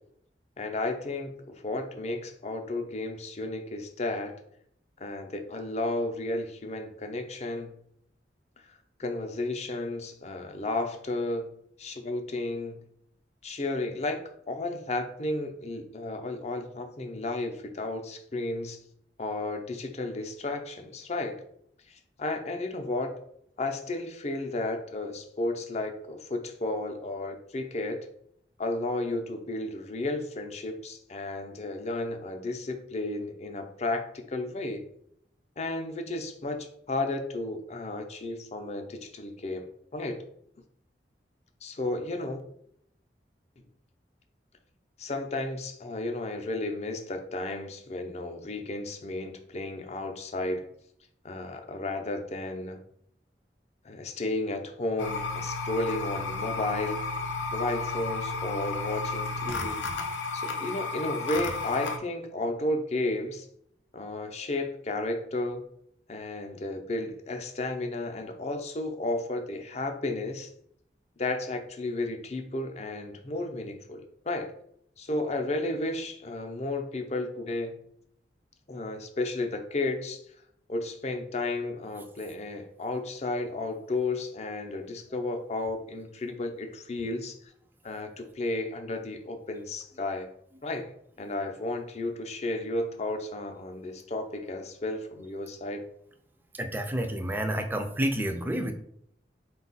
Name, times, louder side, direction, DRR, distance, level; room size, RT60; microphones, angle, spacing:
voice 1, 0.6-4.3 5.0-7.7 9.0-11.5 11.8-12.8 13.4-14.2 14.5-18.8 19.2-21.4 21.9-23.1 23.6-28.0 28.6-34.8 35.6-39.7 39.9-40.2 41.6-42.4 45.0-50.7 51.2-52.8 53.8-57.0 57.5-59.8 60.3-63.5 63.9-65.6 66.1-70.5 71.2-74.5 75.0-77.7 78.7-80.2 80.7-87.4 87.8-90.3 90.6-90.9 91.2-95.8, left 2 dB, 40° left, 5 dB, 0.5 m, -33 dB
sound 1, 55.0-62.0, left 3 dB, 90° left, 0.6 m, -33 dB
voice 2, 96.5-98.7, right 1 dB, 10° right, 6 dB, 0.4 m, -29 dB
4.4 x 2.3 x 4.0 m, 0.70 s
head